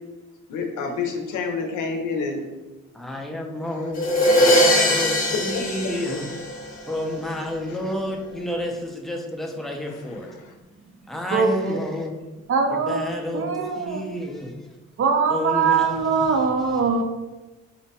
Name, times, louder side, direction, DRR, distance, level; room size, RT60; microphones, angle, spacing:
voice 1, 0.5-2.5 3.6-3.9 4.8-4.9 5.3-6.2 7.7-7.8 9.9-10.5, left 4 dB, 80° left, 4 dB, 0.6 m, -30 dB
voice 2, 2.9-4.1 4.4-6.3 6.9-10.3 11.1-12.2 12.7-14.5 15.3-16.1, left 1 dB, ahead, 1 dB, 0.5 m, -30 dB
sound 1, 4.0-6.9, equal, 30° left, 0.9 m, -20 dB
voice 3, 11.3-11.8 12.5-13.1 13.3-14.1 15.0-17.0, right 5 dB, 45° right, 4 dB, 0.5 m, -22 dB
4.3 x 2.1 x 2.7 m, 1.1 s
cardioid pair, 90°, 30 cm